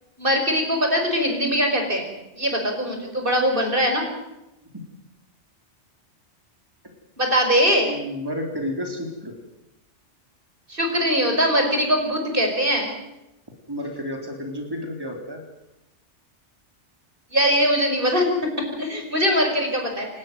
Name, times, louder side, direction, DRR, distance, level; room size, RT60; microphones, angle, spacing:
voice 1, 0.2-2.1 2.4-4.1 7.2-7.9 10.7-12.9 17.3-18.3 18.6-20.1, equal, 50° right, 3 dB, 5.3 m, -21 dB
voice 2, 7.8-9.4 13.7-15.4, left 1 dB, 20° right, 3 dB, 3.6 m, -31 dB
28.0 x 13.0 x 9.4 m, 0.95 s
omnidirectional pair, 1.2 m